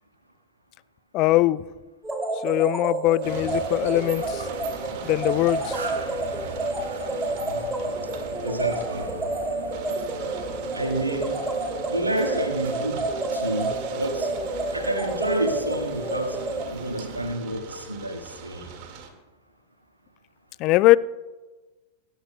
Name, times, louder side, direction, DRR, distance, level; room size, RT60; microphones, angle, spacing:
voice 1, 1.1-1.6 2.4-4.5 5.0-5.7 20.6-21.0, left 18 dB, 40° left, 0.3 m, -21 dB
sound 1, 2.0-16.7, right 2 dB, 5° right, 2.6 m, -30 dB
sound 2, 3.2-9.0 9.7-19.1, right 6 dB, 45° right, 1.9 m, -43 dB
sound 3, 3.2-17.3, right 5 dB, 60° right, 1.6 m, -40 dB
voice 2, 8.4-9.1 10.7-11.4 11.9-13.0 13.3-14.3 14.7-16.4 16.7-18.7, right 1 dB, 85° right, 1.6 m, -29 dB
24.0 x 11.0 x 2.2 m
figure-of-eight pair, 90°, 0 cm